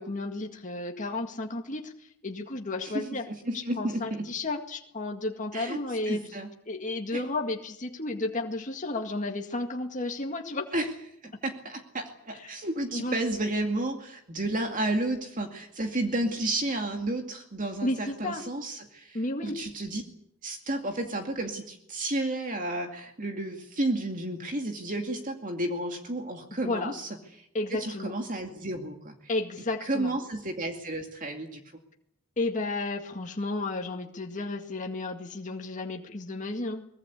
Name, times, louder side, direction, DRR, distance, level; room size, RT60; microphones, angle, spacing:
voice 1, 0.0-3.3 3.5-6.2 6.7-10.6 12.9-13.2 17.8-18.4 19.1-19.6 26.6-26.9 27.5-28.1 29.3-30.2 32.4-36.8, left 2 dB, 35° left, 3 dB, 2.0 m, -32 dB
voice 2, 2.8-4.3 5.5-5.8 6.1-6.5 7.1-7.2 10.7-10.9 11.2-20.0 20.4-27.1 27.4-29.1 29.9-31.6, right 1 dB, 35° right, 4 dB, 2.4 m, -32 dB
24.0 x 21.0 x 8.3 m, 0.75 s
head